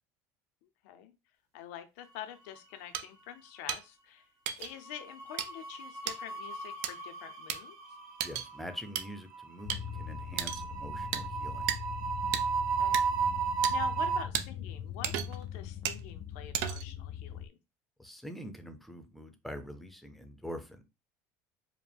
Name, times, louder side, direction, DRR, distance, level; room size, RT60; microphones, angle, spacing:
voice 1, 0.6-1.1 1.5-4.3 4.6-7.8 12.8-13.0 13.7-17.5, left 10 dB, 85° left, 0.7 m, -46 dB
sound 1, 2.2-3.0 3.2-3.5 4.7-14.2, right 6 dB, 50° right, 1.6 m, -35 dB
sound 2, 2.9-3.0 3.7-3.8 4.5-4.7 5.4-5.5 6.1-6.2 6.8-6.9 7.5-7.6 8.2-8.5 9.0-9.1 9.7-9.8 10.4-10.6 11.1-11.2 11.7-11.8 12.3-12.4 12.9-13.0 13.6-13.7 14.3-14.5 15.0-15.4 15.9-16.0 16.5-16.9, right 10 dB, 75° right, 0.5 m, -33 dB
voice 2, 8.2-11.7 18.0-20.8, equal, ahead, 0.6 m, -44 dB
sound 3, 9.6-17.5, left 9 dB, 45° left, 0.3 m, -42 dB
4.8 x 2.1 x 3.5 m
cardioid pair, 130°, 7 cm